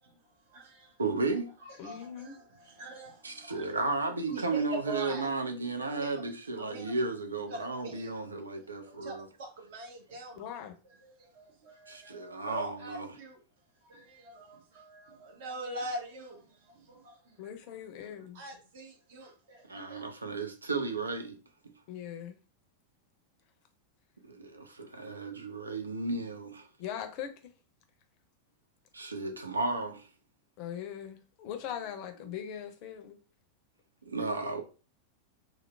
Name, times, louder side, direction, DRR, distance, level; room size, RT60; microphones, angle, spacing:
voice 1, 0.5-1.0 1.6-3.7 4.3-5.3 5.9-6.2 6.6-7.0 7.5-8.1 8.6-10.5 11.0-13.4 13.9-17.4 18.3-20.0, right 2 dB, 55° right, 1.0 m, -44 dB
voice 2, 1.0-1.5 3.2-9.3 11.9-13.1 19.7-21.4 24.3-26.7 28.9-30.1 34.0-34.6, right 3 dB, 75° right, 0.4 m, -34 dB
voice 3, 1.8-2.4 10.3-10.8 17.4-18.4 21.9-22.4 26.8-27.5 30.6-33.2, left 9 dB, 45° left, 0.5 m, -40 dB
3.1 x 2.0 x 3.3 m
figure-of-eight pair, 90°, 0 cm